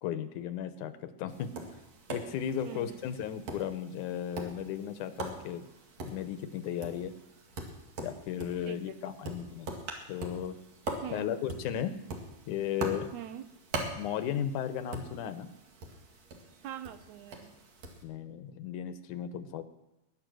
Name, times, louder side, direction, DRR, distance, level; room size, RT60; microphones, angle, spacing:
voice 1, 0.0-1.6 2.1-5.7 6.0-7.1 8.0-9.7 10.1-10.6 11.1-11.9 12.5-13.1 14.0-15.5 18.0-19.6, left 9 dB, 85° left, 11 dB, 2.4 m, -35 dB
Tap, 1.3-18.0, right 2 dB, 60° right, 3.1 m, -43 dB
voice 2, 2.6-3.1 8.6-9.0 9.3-9.4 11.0-11.3 13.1-13.5 16.6-17.5, right 11 dB, 75° right, 11 dB, 2.2 m, -43 dB
21.0 x 9.8 x 6.2 m, 0.96 s
omnidirectional pair, 3.5 m